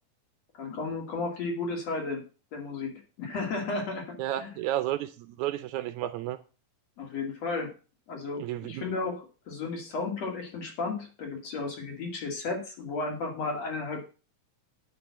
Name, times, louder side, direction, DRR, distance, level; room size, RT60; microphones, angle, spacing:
voice 1, 0.6-4.5 7.0-7.7 8.1-14.0, left 3 dB, 55° left, 3.4 m, -34 dB
voice 2, 4.2-6.4 8.4-8.8, right 13 dB, 75° right, 1.9 m, -32 dB
9.2 x 5.7 x 7.2 m
omnidirectional pair, 3.7 m